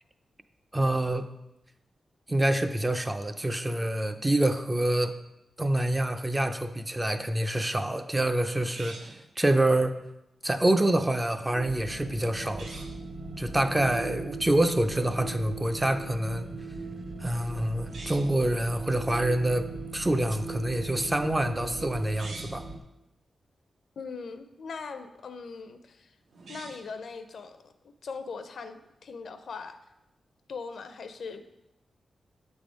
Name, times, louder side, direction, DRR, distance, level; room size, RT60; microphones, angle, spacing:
voice 1, 0.7-1.3 2.3-5.1 5.6-10.1 10.4-12.8 13.4-16.5 17.2-19.7 19.9-22.6, right 1 dB, 15° right, 8 dB, 0.4 m, -26 dB
sound 1, 8.7-9.3 12.5-13.0 17.8-18.4 22.0-22.7 26.3-27.0, right 2 dB, 85° right, 0.9 m, -45 dB
sound 2, 11.5-22.8, right 3 dB, 55° right, 0.7 m, -39 dB
voice 2, 24.0-26.1 26.5-27.7 28.0-29.8 30.5-31.4, left 5 dB, 65° left, 9 dB, 0.5 m, -40 dB
7.2 x 3.5 x 5.1 m, 0.89 s
wide cardioid pair, 145°, 0 cm